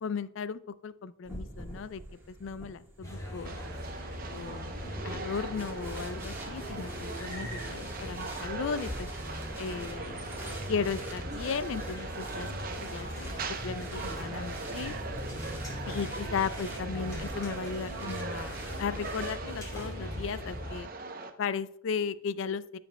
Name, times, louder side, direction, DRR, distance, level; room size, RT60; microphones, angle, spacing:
voice 1, 0.0-2.0 2.3-3.6 4.3-9.1 9.6-10.2 10.7-15.0 15.9-20.9 21.4-22.8, left 6 dB, 70° left, 16 dB, 0.4 m, -36 dB
sound 1, 1.3-19.9, right 1 dB, 10° right, 1.4 m, -47 dB
sound 2, 3.0-20.8, left 1 dB, 15° left, 2.2 m, -40 dB
sound 3, 3.4-21.3, right 3 dB, 45° right, 0.7 m, -41 dB
14.5 x 5.1 x 2.2 m, 0.73 s
head